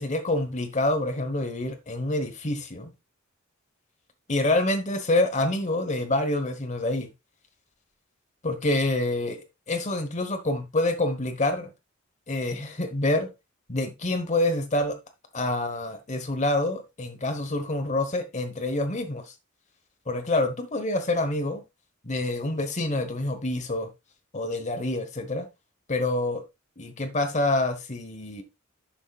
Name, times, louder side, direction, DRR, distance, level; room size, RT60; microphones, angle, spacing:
voice 1, 0.0-2.9 4.3-7.1 8.4-11.7 12.3-13.3 13.7-15.0 15.3-19.3 20.1-21.6 22.0-23.9 24.3-25.5 25.9-26.4 26.8-28.4, left 2 dB, 35° left, 1.1 m, -27 dB
11.5 x 7.2 x 2.4 m
head